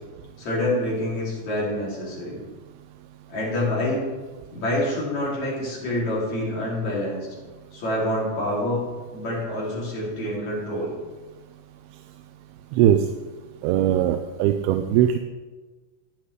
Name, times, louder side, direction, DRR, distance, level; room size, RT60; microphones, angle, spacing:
voice 1, 0.4-2.4 3.3-4.1 4.5-7.4 7.7-8.8 9.1-10.9, left 1 dB, 50° left, -5 dB, 4.0 m, -27 dB
voice 2, 13.6-15.2, right 11 dB, 90° right, 7 dB, 2.5 m, -20 dB
13.5 x 9.7 x 3.3 m, 1.3 s
omnidirectional pair, 4.3 m